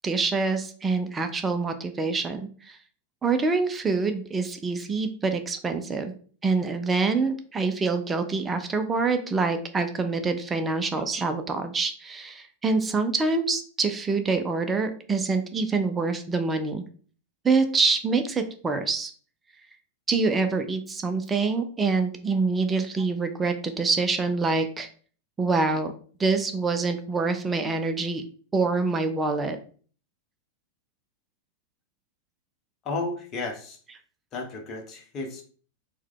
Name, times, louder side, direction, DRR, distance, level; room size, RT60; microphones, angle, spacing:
voice 1, 0.0-2.8 3.2-6.1 6.4-16.8 17.4-19.1 20.1-24.9 25.4-25.9 26.2-28.2 28.5-29.6, right 4 dB, 15° right, 7 dB, 0.4 m, -26 dB
voice 2, 32.8-33.8 34.3-35.4, left 3 dB, 30° left, 3 dB, 0.8 m, -33 dB
4.4 x 2.2 x 3.7 m, 0.43 s
figure-of-eight pair, 90°, 0 cm